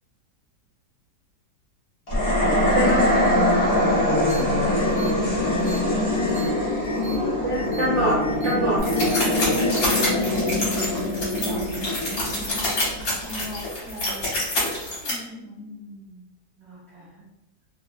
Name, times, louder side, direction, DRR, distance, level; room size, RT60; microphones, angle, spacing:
sound 1, 2.1-13.4, left 1 dB, 35° left, 0.6 m, -23 dB
voice 1, 2.7-3.4 7.4-8.8, right 1 dB, 65° right, -8 dB, 0.7 m, -25 dB
sound 2, 4.3-4.4 4.8-5.1 5.5-5.8 6.2-6.5 6.8-7.2 7.5-7.9 8.2-8.5 8.9-9.2 9.6-9.7, left 2 dB, 80° left, 1.3 m, -39 dB
voice 2, 7.3-7.9 9.8-11.1 11.4-11.9 12.4-12.6 13.2-14.4 15.0-16.2 16.6-17.3, left 1 dB, 20° right, -8 dB, 0.4 m, -40 dB
sound 3, 8.8-15.1, left 1 dB, 55° left, 1.3 m, -27 dB
3.3 x 2.1 x 2.3 m, 0.95 s
omnidirectional pair, 2.0 m